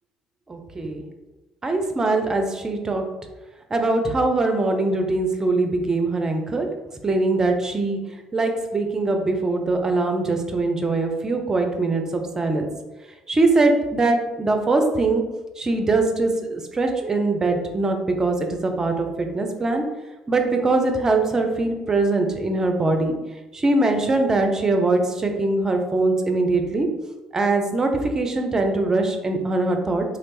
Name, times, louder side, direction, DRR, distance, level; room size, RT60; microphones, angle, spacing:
voice 1, 0.5-1.0 1.6-3.0 3.7-6.7 7.0-8.0 8.3-12.7 13.3-15.2 15.6-19.8 20.3-23.2 23.5-26.9 27.3-30.0, right 2 dB, 25° right, 4 dB, 0.5 m, -22 dB
3.0 x 2.5 x 3.3 m, 1.1 s
figure-of-eight pair, 50°, 2 cm